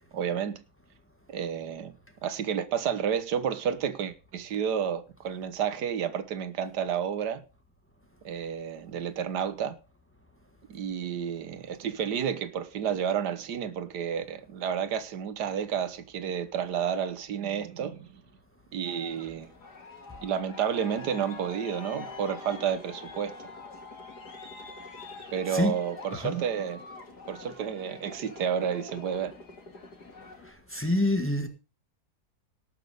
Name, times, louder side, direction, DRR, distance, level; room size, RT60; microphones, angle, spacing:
voice 1, 0.1-0.6 1.3-1.9 2.2-7.4 8.2-9.8 10.7-18.1 18.7-19.5 20.2-23.3 25.3-26.8 27.3-29.3, right 8 dB, 90° right, 1.7 m, -31 dB
Aircraft, 18.8-30.5, left 3 dB, 80° left, 3.1 m, -45 dB
voice 2, 30.4-31.5, left 1 dB, 10° left, 1.5 m, -27 dB
18.5 x 6.8 x 5.1 m
omnidirectional pair, 1.7 m